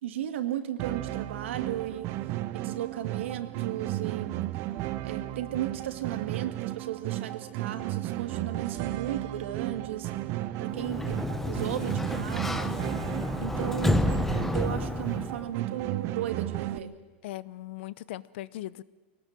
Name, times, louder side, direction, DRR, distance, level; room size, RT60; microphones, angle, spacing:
voice 1, 0.0-2.2 2.5-4.4 5.0-10.1 10.6-12.6 13.4-14.2 14.5-16.9, right 11 dB, 80° right, 7 dB, 2.1 m, -35 dB
sound 1, 0.8-16.8, right 15 dB, 45° right, 0.8 m, -34 dB
Sliding door, 10.6-15.5, left 2 dB, 5° left, 0.8 m, -30 dB
voice 2, 17.2-18.8, left 15 dB, 65° left, 19 dB, 0.8 m, -39 dB
22.5 x 19.0 x 7.7 m, 1.3 s
supercardioid pair, 130°, 6 cm